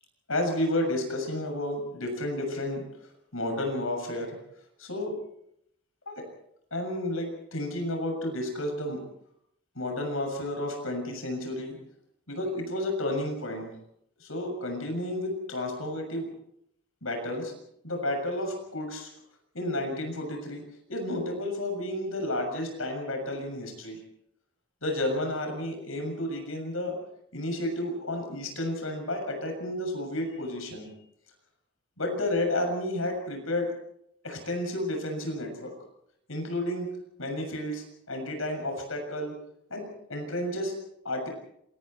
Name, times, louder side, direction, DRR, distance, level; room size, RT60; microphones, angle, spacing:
voice 1, 0.3-4.4 4.8-5.1 6.1-6.2 6.7-9.0 9.8-11.8 12.3-13.7 14.2-16.3 17.0-17.6 17.8-19.1 19.5-20.6 20.9-24.0 24.8-27.0 27.3-30.9 32.0-33.7 34.2-35.7 36.3-36.9 37.2-39.3 39.7-40.8 41.1-41.3, left 1 dB, 75° left, 3 dB, 6.9 m, -31 dB
28.0 x 24.0 x 4.5 m, 0.73 s
head